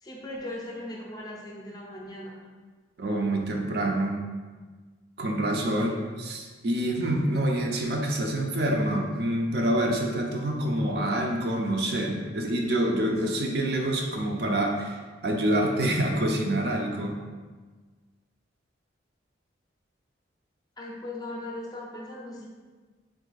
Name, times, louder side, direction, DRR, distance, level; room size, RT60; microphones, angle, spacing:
voice 1, 0.0-2.4 20.8-22.5, left 1 dB, 20° left, -2 dB, 0.4 m, -38 dB
voice 2, 3.0-4.2 5.2-15.0 15.2-17.1, right 1 dB, 55° right, 1 dB, 0.5 m, -26 dB
3.6 x 2.6 x 3.9 m, 1.4 s
head